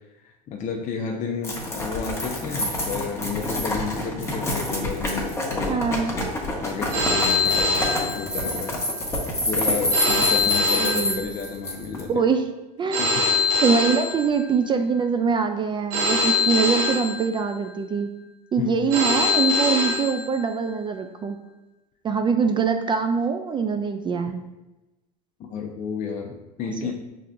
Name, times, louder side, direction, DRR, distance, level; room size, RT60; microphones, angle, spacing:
voice 1, 0.2-6.1 6.6-8.8 9.1-12.1 13.0-13.3 18.6-18.9 25.4-26.9, left 5 dB, 40° left, 1 dB, 0.6 m, -31 dB
sound 1, 1.4-12.0, left 1 dB, 15° left, 1.1 m, -27 dB
voice 2, 5.7-6.2 10.8-11.3 12.1-12.5 12.8-13.0 13.6-18.1 18.5-21.4 22.0-24.4 26.8-26.9, right 6 dB, 25° right, 6 dB, 0.3 m, -23 dB
Telephone, 6.9-8.8 9.9-11.8 12.9-14.8 15.9-17.8 18.9-20.8, left 3 dB, 75° right, 1.2 m, -24 dB
5.7 x 3.4 x 2.5 m, 1.0 s
supercardioid pair, 100°, 20 cm